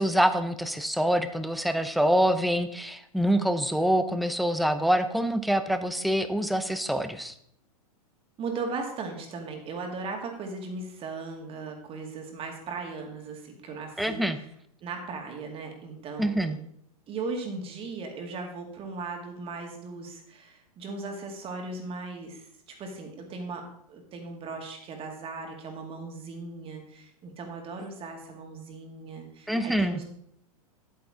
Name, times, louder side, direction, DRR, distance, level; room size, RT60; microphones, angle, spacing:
voice 1, 0.0-7.3 14.0-14.4 16.2-16.6 29.5-30.0, equal, ahead, 10 dB, 0.6 m, -25 dB
voice 2, 8.4-14.3 14.8-16.6 17.1-22.5 22.8-30.0, right 4 dB, 30° right, 3 dB, 2.2 m, -37 dB
10.5 x 8.8 x 3.7 m, 0.68 s
figure-of-eight pair, 100°, 19 cm